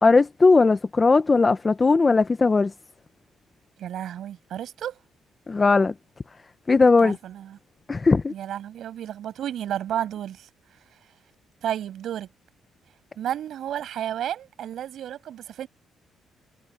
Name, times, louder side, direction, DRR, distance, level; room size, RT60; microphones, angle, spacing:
voice 1, 0.0-2.7 5.5-5.9 6.7-7.2 7.9-8.3, left 4 dB, 30° left, 1.2 m, -18 dB
voice 2, 3.8-5.0 7.0-7.6 8.3-10.5 11.6-12.3 13.1-15.7, right 10 dB, 70° right, 7.0 m, -32 dB
cardioid pair, 90°, 0 cm